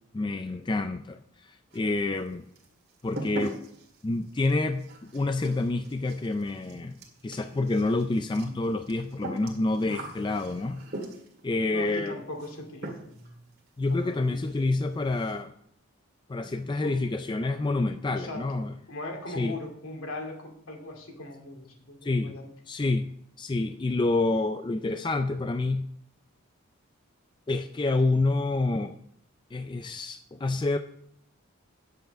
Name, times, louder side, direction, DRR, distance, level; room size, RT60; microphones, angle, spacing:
voice 1, 0.1-2.4 3.0-3.6 4.0-10.8 11.4-12.2 13.8-15.5 16.3-18.7 19.3-19.6 22.0-22.4 22.7-23.1 23.4-25.9 27.5-29.0 29.5-30.8, left 2 dB, 20° left, 8 dB, 0.3 m, -28 dB
sound 1, 1.7-2.3 2.6-11.5 12.4-12.6 12.8-13.3 13.6-13.7 14.1-14.2 14.4-14.6 14.9-15.4, right 1 dB, 50° right, 1.9 m, -41 dB
voice 2, 11.7-13.3 13.9-14.4 16.8-16.9 18.1-18.6 18.9-22.5, left 2 dB, 75° left, 2 dB, 2.4 m, -39 dB
9.3 x 7.9 x 5.0 m, 0.70 s
head